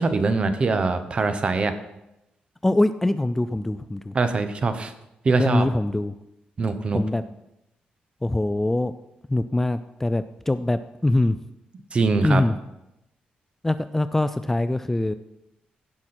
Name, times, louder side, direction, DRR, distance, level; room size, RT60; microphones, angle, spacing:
voice 1, 0.0-1.7 4.1-4.9 5.2-5.7 6.6-7.0 11.9-12.4, right 3 dB, 35° right, 9 dB, 1.0 m, -22 dB
voice 2, 2.6-4.1 5.4-6.1 6.9-7.2 8.2-8.9 9.3-11.4 12.2-12.6 13.6-15.1, left 2 dB, 10° left, 12 dB, 0.3 m, -23 dB
16.5 x 6.0 x 4.3 m, 0.87 s
cardioid pair, 120°, 3 cm